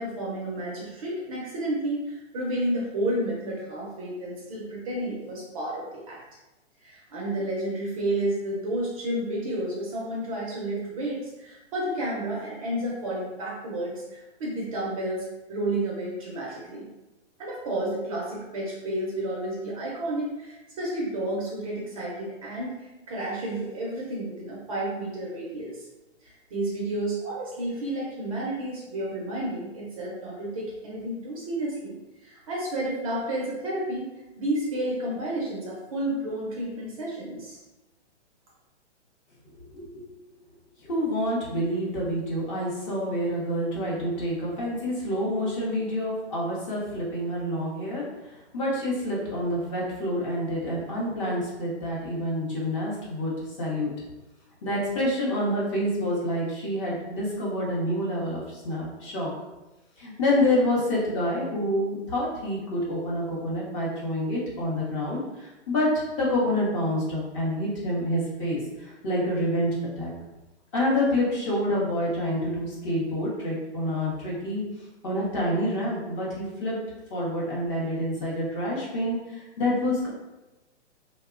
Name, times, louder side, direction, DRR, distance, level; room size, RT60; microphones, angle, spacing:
voice 1, 0.0-6.2 6.8-16.9 17.4-25.9 26.2-34.1 34.4-37.6, right 1 dB, 30° right, -4 dB, 0.5 m, -31 dB
voice 2, 39.7-40.0 40.8-48.0 48.5-53.3 53.6-53.9 54.6-59.3 60.0-70.1 70.7-74.6 75.0-76.8 77.1-80.1, left 1 dB, 25° left, -5 dB, 0.6 m, -27 dB
2.8 x 2.1 x 2.4 m, 1.0 s
hypercardioid pair, 145°, 35 cm